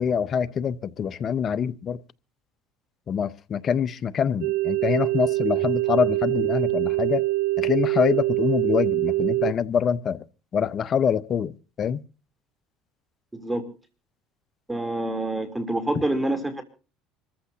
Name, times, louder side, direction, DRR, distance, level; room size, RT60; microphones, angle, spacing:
voice 1, 0.0-2.0 3.1-7.2 7.6-10.2 10.5-12.0, left 7 dB, 40° left, 0.8 m, -25 dB
sound 1, 4.4-9.5, right 20 dB, 85° right, 0.8 m, -24 dB
voice 2, 13.3-13.7 14.7-16.6, right 1 dB, 10° right, 3.2 m, -27 dB
26.5 x 14.5 x 2.8 m
supercardioid pair, 95°, 0 cm